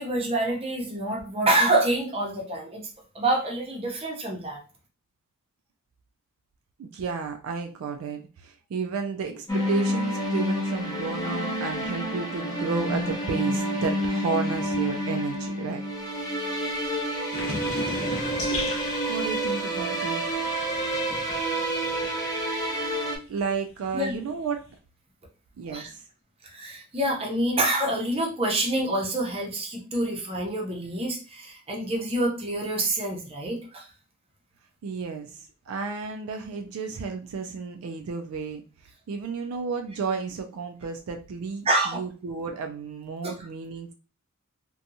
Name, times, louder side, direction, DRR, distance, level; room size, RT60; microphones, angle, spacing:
voice 1, 0.0-2.9 3.1-4.6 23.9-24.2 25.7-25.9 26.4-33.9 41.6-42.0 43.2-43.3, right 1 dB, 25° right, -1 dB, 0.6 m, -27 dB
voice 2, 6.8-15.8 19.1-20.2 23.3-24.6 25.6-26.0 34.8-38.6 39.1-43.9, right 5 dB, 70° right, 5 dB, 0.3 m, -32 dB
sound 1, 9.5-23.2, equal, 15° left, 0.5 m, -28 dB
sound 2, 17.3-22.7 23.0-24.7, left 2 dB, 55° left, 0.8 m, -37 dB
2.7 x 2.2 x 2.6 m, 0.35 s
head